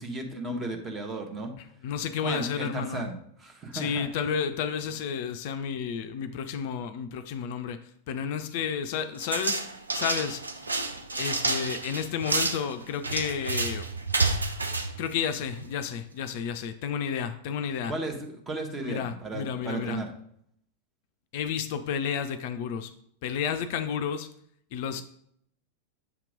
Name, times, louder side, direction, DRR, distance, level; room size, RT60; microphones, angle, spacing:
voice 1, 0.0-1.5 2.2-4.1 17.9-20.1, right 2 dB, 20° right, 3 dB, 0.9 m, -35 dB
voice 2, 1.8-3.1 3.7-7.8 8.1-9.6 9.9-10.4 11.2-13.9 15.0-17.9 18.8-20.0 21.3-22.9 23.2-24.3 24.7-25.0, left 7 dB, 50° left, 9 dB, 0.4 m, -31 dB
sound 1, 9.2-15.8, right 3 dB, 80° right, 0.4 m, -30 dB
7.0 x 2.9 x 5.1 m, 0.69 s
figure-of-eight pair, 90°, 0 cm